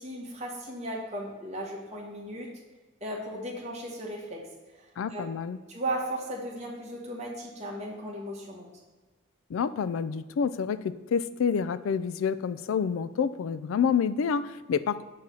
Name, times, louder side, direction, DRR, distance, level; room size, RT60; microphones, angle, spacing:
voice 1, 0.0-2.5 3.0-4.5 4.7-4.8 5.1-5.3 5.7-8.7, right 1 dB, 35° right, -2 dB, 1.5 m, -36 dB
voice 2, 5.0-5.6 9.5-15.0, left 6 dB, 80° left, 15 dB, 0.3 m, -28 dB
7.4 x 3.8 x 5.6 m, 1.3 s
head